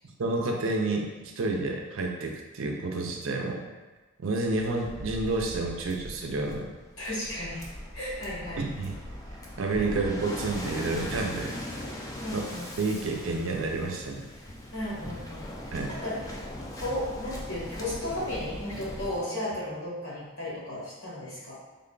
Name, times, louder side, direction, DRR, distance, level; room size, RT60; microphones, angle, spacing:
voice 1, 0.2-3.6 4.2-6.7 8.6-8.9 9.6-11.6 12.3-12.4 12.8-14.2 15.7-15.9, right 2 dB, 70° right, 1 dB, 0.5 m, -29 dB
Waves surf, 4.4-19.2, left 1 dB, 15° left, 0.4 m, -40 dB
voice 2, 7.0-7.6 7.9-8.7 12.2-12.7 14.3-21.6, left 1 dB, 80° left, -7 dB, 1.5 m, -35 dB
3.6 x 2.2 x 3.8 m, 1.2 s
head